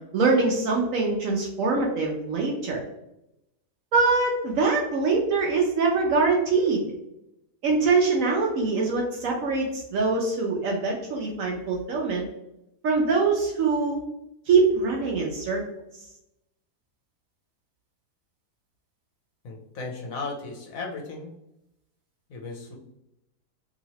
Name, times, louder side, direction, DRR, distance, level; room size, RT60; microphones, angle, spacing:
voice 1, 0.1-2.8 3.9-6.8 7.6-12.2 12.8-14.0 14.5-15.6, right 4 dB, 70° right, -1 dB, 0.8 m, -23 dB
voice 2, 19.4-21.3 22.3-22.7, left 3 dB, 65° left, -1 dB, 1.0 m, -36 dB
2.9 x 2.7 x 2.8 m, 0.85 s
omnidirectional pair, 1.7 m